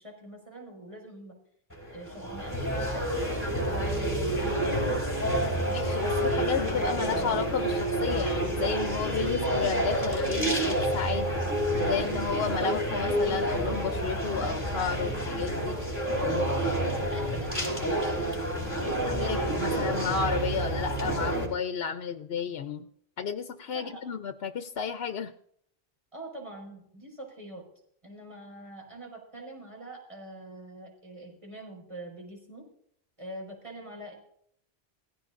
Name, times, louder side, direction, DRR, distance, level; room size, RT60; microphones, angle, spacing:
voice 1, 0.0-1.4 1.9-5.8 17.1-19.5 20.0-20.2 20.5-20.6 23.7-24.0 26.1-27.6 28.0-32.7 33.2-34.1, right 1 dB, 30° right, 0 dB, 4.9 m, -44 dB
sound 1, 1.7-21.5, right 1 dB, 15° left, 4.1 m, -29 dB
voice 2, 5.7-11.3 11.8-15.8 19.1-22.8 23.2-25.3, left 6 dB, 70° left, 8 dB, 1.0 m, -32 dB
17.5 x 16.5 x 2.6 m, 0.68 s
omnidirectional pair, 1.1 m